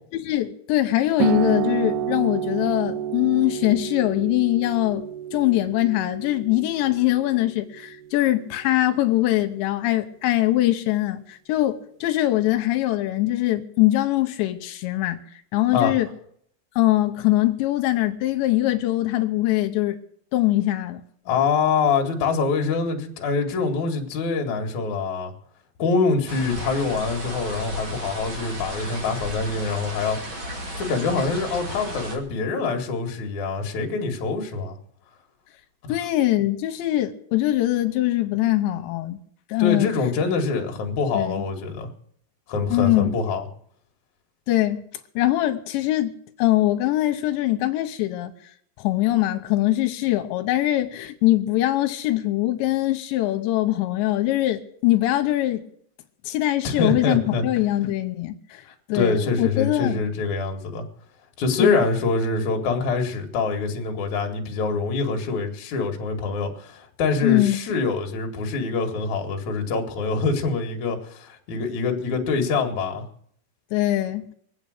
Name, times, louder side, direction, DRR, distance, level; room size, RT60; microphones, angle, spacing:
voice 1, 0.1-5.1 5.3-15.2 15.5-16.1 16.8-20.0 20.3-21.0 35.9-39.2 39.5-39.9 41.1-41.4 42.7-43.1 44.5-44.8 45.2-46.1 46.4-48.3 48.8-55.6 56.3-58.6 58.9-60.1 61.6-61.8 67.2-67.6 73.7-74.2, left 16 dB, 85° left, 3.1 m, -22 dB
sound 1, 1.2-8.3, right 10 dB, 75° right, 2.0 m, -30 dB
voice 2, 21.3-25.3 25.8-30.2 30.8-34.8 35.8-35.9 39.6-41.9 42.5-43.5 56.6-57.4 58.6-60.8 61.4-73.0, left 4 dB, 50° left, 2.8 m, -25 dB
sound 2, 26.3-32.2, equal, 30° right, 2.9 m, -34 dB
22.5 x 8.7 x 6.5 m
omnidirectional pair, 5.0 m